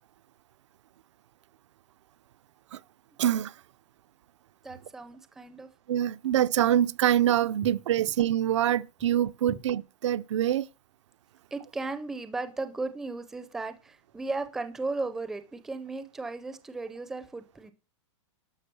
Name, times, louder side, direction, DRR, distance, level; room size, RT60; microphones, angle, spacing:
voice 1, 3.2-3.6 5.9-10.7, right 11 dB, 70° right, 0.5 m, -25 dB
voice 2, 4.6-5.7 7.6-7.7 11.5-17.7, right 3 dB, 5° right, 0.4 m, -35 dB
12.0 x 6.1 x 6.8 m
supercardioid pair, 180°, 16 cm